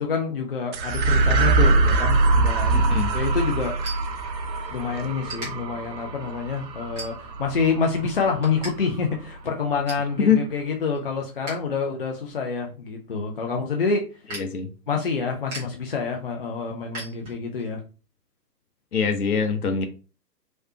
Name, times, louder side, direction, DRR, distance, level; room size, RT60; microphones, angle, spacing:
voice 1, 0.0-3.8 4.7-14.2 14.9-17.8, left 5 dB, 35° left, 0.4 m, -27 dB
sound 1, 0.7-9.4, right 3 dB, 85° right, 0.6 m, -23 dB
voice 2, 2.7-3.1 10.2-10.4 14.3-14.7 18.9-19.9, left 6 dB, 60° left, 0.9 m, -23 dB
sound 2, 3.8-4.8 5.2-5.5 6.1-6.3 6.9-7.5 7.9-8.7 9.0-9.1 9.5-10.1 10.6-11.7 12.0-17.7, right 2 dB, 10° right, 0.6 m, -40 dB
3.1 x 2.6 x 2.8 m
figure-of-eight pair, 130°, 50 cm